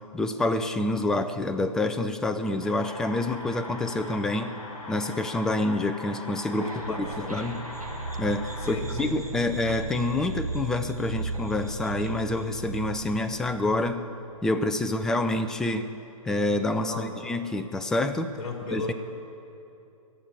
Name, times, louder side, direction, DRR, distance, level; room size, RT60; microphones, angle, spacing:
voice 1, 0.1-4.6 4.9-7.6 8.2-14.0 14.4-15.9 16.2-18.3 18.7-18.9, left 2 dB, 5° left, 8 dB, 0.3 m, -27 dB
sound 1, 2.6-8.7, left 1 dB, 30° left, 4.5 m, -41 dB
voice 2, 6.6-7.4 8.6-9.2 16.8-17.2 18.3-18.9, left 3 dB, 55° left, 2 dB, 2.5 m, -35 dB
sound 2, 6.6-13.8, right 2 dB, 90° right, 1.8 m, -36 dB
19.5 x 7.5 x 9.7 m, 2.8 s
figure-of-eight pair, 125°, 18 cm